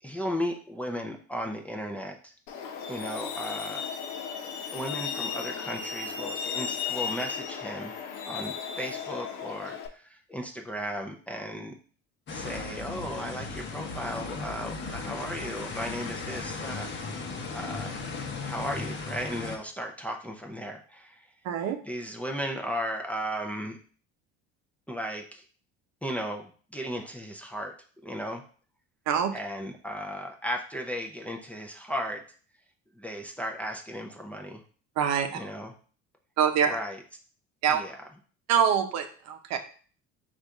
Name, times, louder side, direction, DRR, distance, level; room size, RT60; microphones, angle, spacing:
voice 1, 0.0-2.3 2.9-3.9 4.7-11.7 12.3-16.9 17.5-18.0 18.4-21.3 21.8-23.8 24.9-25.4 26.0-27.7 28.0-28.4 29.3-32.2 32.9-34.6 35.3-35.7 36.6-37.0 37.7-38.1, equal, 5° left, 1 dB, 0.5 m, -35 dB
Truck, 2.5-9.9, left 7 dB, 85° left, 0.8 m, -35 dB
sound 1, 12.3-19.6, left 4 dB, 40° left, 0.9 m, -36 dB
voice 2, 21.5-21.8 29.1-29.3 35.0-35.3 36.4-36.8 37.6-37.8 38.5-39.6, right 8 dB, 65° right, 6 dB, 0.7 m, -24 dB
4.0 x 2.5 x 4.6 m, 0.42 s
cardioid pair, 115°, 29 cm